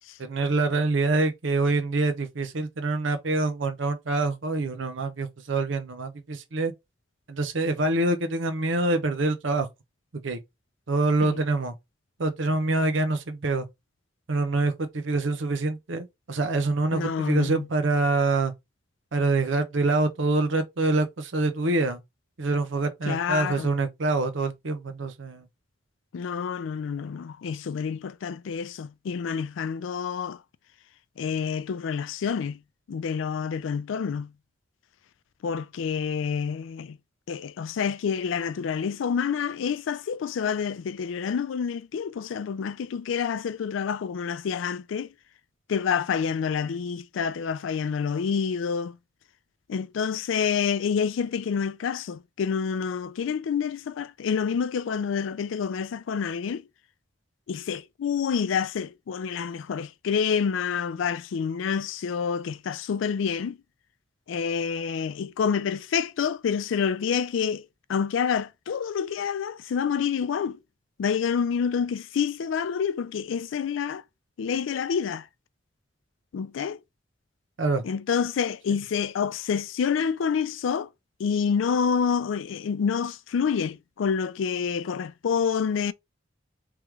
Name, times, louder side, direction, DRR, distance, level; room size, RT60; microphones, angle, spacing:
voice 1, 0.2-6.7 7.3-9.7 10.1-10.4 10.9-11.7 12.2-13.7 14.3-18.5 19.1-22.0 22.4-25.5 77.6-77.8, right 2 dB, 80° right, 0.7 m, -25 dB
voice 2, 16.9-17.7 23.0-23.7 26.1-30.4 31.2-32.6 32.9-34.3 35.4-37.0 37.3-45.1 45.7-49.0 49.7-56.7 57.5-63.6 64.3-70.6 71.0-74.0 74.4-75.3 76.3-76.8 77.8-80.9 81.2-85.9, left 6 dB, 90° left, 0.4 m, -28 dB
3.6 x 3.0 x 3.1 m
head